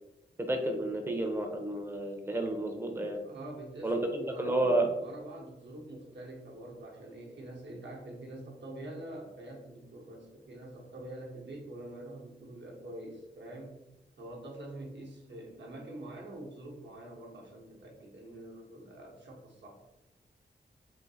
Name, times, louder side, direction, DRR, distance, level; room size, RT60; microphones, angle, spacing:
voice 1, 0.5-3.2 3.8-4.9, right 1 dB, 10° right, 3 dB, 0.6 m, -31 dB
voice 2, 3.2-13.8 14.2-19.8, right 1 dB, 65° right, -1 dB, 0.9 m, -45 dB
3.8 x 2.6 x 2.6 m, 0.98 s
cardioid pair, 70°, 20 cm